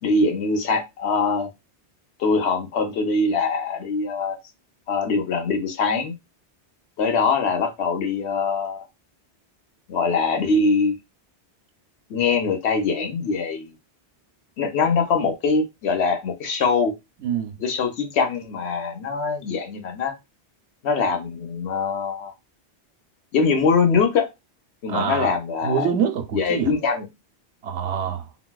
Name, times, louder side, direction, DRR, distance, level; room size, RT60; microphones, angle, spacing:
voice 1, 0.0-1.5 2.2-4.4 4.9-6.1 7.0-8.9 9.9-11.0 12.1-13.7 14.6-16.9 17.6-20.1 20.8-22.3 23.3-24.3 24.8-25.9 26.3-27.1, left 4 dB, 70° left, 1.0 m, -23 dB
voice 2, 17.2-17.5 24.9-25.3 25.6-26.7 27.6-28.3, right 7 dB, 85° right, 0.9 m, -25 dB
3.9 x 2.2 x 2.2 m
omnidirectional pair, 1.1 m